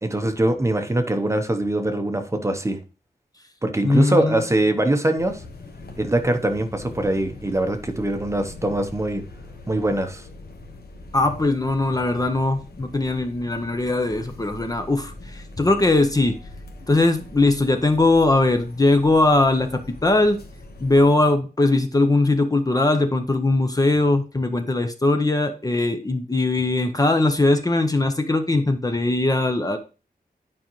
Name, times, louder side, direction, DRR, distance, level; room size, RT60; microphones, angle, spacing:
voice 1, 0.0-2.8 3.6-5.4 6.0-9.2 9.7-10.2, right 1 dB, 15° right, 0.8 m, -22 dB
voice 2, 3.8-4.4 11.1-16.4 16.9-20.4 20.8-29.8, left 2 dB, 20° left, 0.7 m, -20 dB
sound 1, 5.2-21.1, left 2 dB, 75° left, 1.3 m, -42 dB
9.8 x 5.1 x 3.0 m
wide cardioid pair, 130°, 16 cm